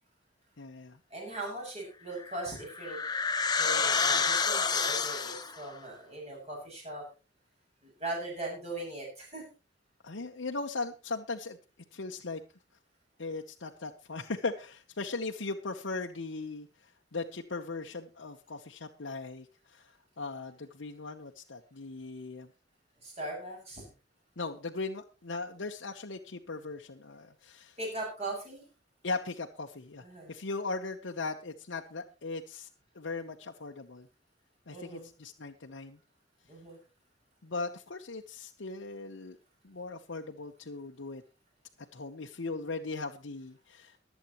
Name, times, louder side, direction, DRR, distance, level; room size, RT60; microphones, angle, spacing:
voice 1, 0.6-1.0 10.0-11.6 11.9-12.4 13.2-19.9 20.2-22.5 24.4-27.8 29.0-32.7 32.9-34.1 34.7-36.0 37.4-39.4 39.6-41.2 41.9-44.0, left 3 dB, 70° left, 2 dB, 0.9 m, -38 dB
voice 2, 1.1-3.0 3.6-7.0 7.8-9.4 23.0-23.9 27.8-28.6 30.0-30.3 34.7-35.1 36.5-36.8, right 2 dB, 35° right, -2 dB, 6.6 m, -39 dB
sound 1, 2.2-5.6, left 5 dB, 20° left, 0.9 m, -29 dB
23.5 x 8.2 x 3.0 m, 0.32 s
head